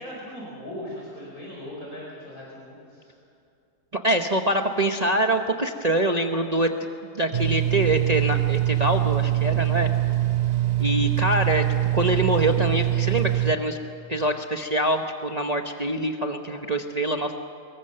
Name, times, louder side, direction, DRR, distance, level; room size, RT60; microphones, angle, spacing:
voice 1, 0.0-3.1, left 1 dB, 60° left, -4 dB, 5.3 m, -39 dB
voice 2, 4.0-6.7 7.1-9.9 10.8-11.6 11.9-13.8 14.1-17.4, right 1 dB, 30° right, 4 dB, 0.9 m, -24 dB
sound 1, 7.3-13.5, right 14 dB, 50° right, 0.5 m, -23 dB
25.0 x 22.0 x 6.6 m, 2.5 s
omnidirectional pair, 1.7 m